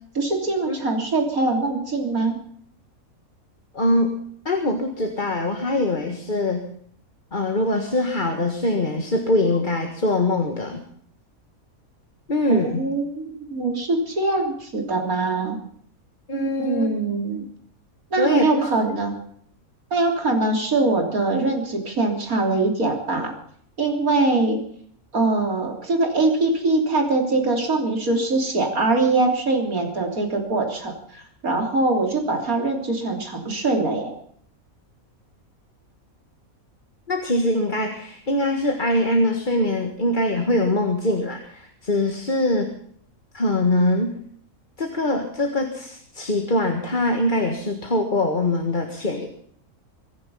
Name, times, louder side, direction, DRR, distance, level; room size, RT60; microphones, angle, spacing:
voice 1, 0.1-2.4 12.5-15.6 16.3-17.5 18.1-19.1 19.9-23.3 23.8-24.6 25.1-34.1, right 3 dB, 75° right, 3 dB, 3.8 m, -23 dB
voice 2, 3.7-4.1 4.5-6.6 7.3-10.8 12.3-12.8 16.3-16.9 18.2-19.0 37.1-42.7 43.3-44.1 44.8-49.3, left 1 dB, 35° left, 4 dB, 1.8 m, -23 dB
24.5 x 10.5 x 5.6 m, 0.62 s
omnidirectional pair, 1.5 m